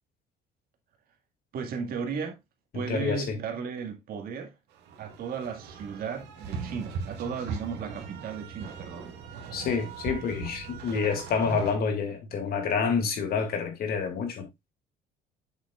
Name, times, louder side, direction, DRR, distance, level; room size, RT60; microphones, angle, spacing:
voice 1, 1.5-2.4 2.7-4.5 5.0-9.2, right 6 dB, 60° right, 2.0 m, -35 dB
voice 2, 2.7-3.4 9.5-14.5, left 5 dB, 65° left, 2.3 m, -28 dB
sound 1, 4.7-11.7, right 5 dB, 85° right, 1.9 m, -39 dB
7.6 x 7.3 x 2.4 m
cardioid pair, 110°, 17 cm